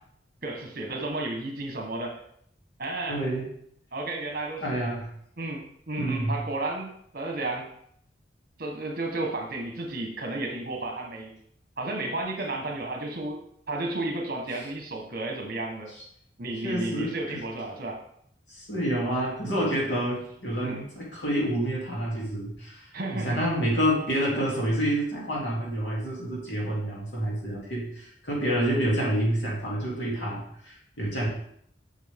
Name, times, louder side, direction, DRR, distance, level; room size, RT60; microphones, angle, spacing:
voice 1, 0.4-2.2 2.8-3.2 3.9-4.8 5.4-7.7 8.6-11.3 11.8-13.4 13.7-15.9 16.4-18.0 20.6-20.8 22.9-23.4, right 2 dB, 50° right, 2 dB, 1.4 m, -32 dB
voice 2, 3.1-3.5 4.6-5.1 6.0-6.4 14.5-14.6 15.9-16.0 16.6-17.4 18.5-31.3, right 1 dB, 75° left, -4 dB, 3.0 m, -28 dB
7.4 x 6.0 x 3.7 m, 0.67 s
head